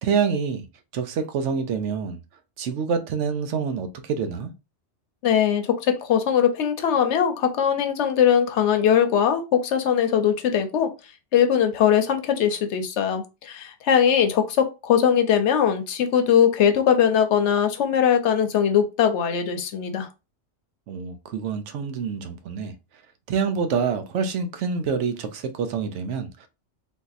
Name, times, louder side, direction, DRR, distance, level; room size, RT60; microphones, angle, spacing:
voice 1, 0.0-0.6 0.9-2.2 2.6-4.5 20.9-22.7 23.3-26.5, right 6 dB, 80° right, 0.9 m, -26 dB
voice 2, 5.2-10.9 11.3-20.1, left 8 dB, 75° left, 0.9 m, -21 dB
3.7 x 2.6 x 2.4 m
omnidirectional pair, 1.2 m